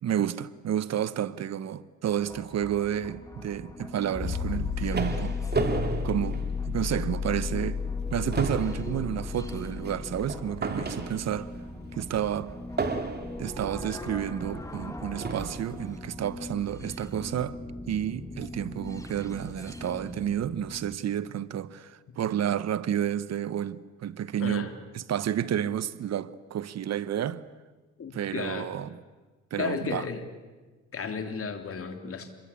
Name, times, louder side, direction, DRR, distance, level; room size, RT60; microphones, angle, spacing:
voice 1, 0.0-5.4 6.0-7.8 8.1-11.5 11.9-12.5 13.4-17.6 17.9-24.7 24.9-27.4 28.1-28.9 29.5-30.0, right 10 dB, 60° right, 1.0 m, -30 dB
sound 1, 2.1-21.0, left 1 dB, 10° left, 2.5 m, -41 dB
sound 2, 4.1-12.6 14.1-14.2, left 6 dB, 35° left, 5.5 m, -33 dB
sound 3, 4.4-7.1 7.5-7.7 8.0-11.5 12.8-13.5 14.4-14.5 15.2-15.7, right 3 dB, 35° right, 2.7 m, -33 dB
voice 2, 24.4-24.7 28.0-28.7 29.6-30.2 30.9-32.3, left 5 dB, 50° left, 3.3 m, -34 dB
27.5 x 22.5 x 8.6 m
cardioid pair, 90°, 30 cm